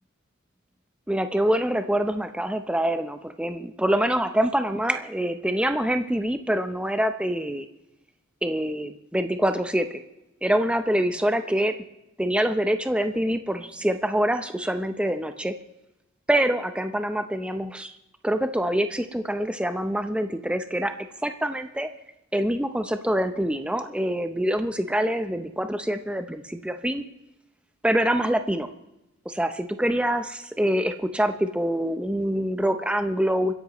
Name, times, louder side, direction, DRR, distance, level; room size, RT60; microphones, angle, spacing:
voice 1, 1.1-7.7 8.4-10.0 10.4-11.7 12.2-15.5 16.3-17.9 18.2-20.9 21.2-21.9 22.3-27.1 27.8-28.7 29.3-33.5, equal, 5° right, 8 dB, 0.7 m, -25 dB
29.0 x 10.5 x 3.0 m, 0.93 s
head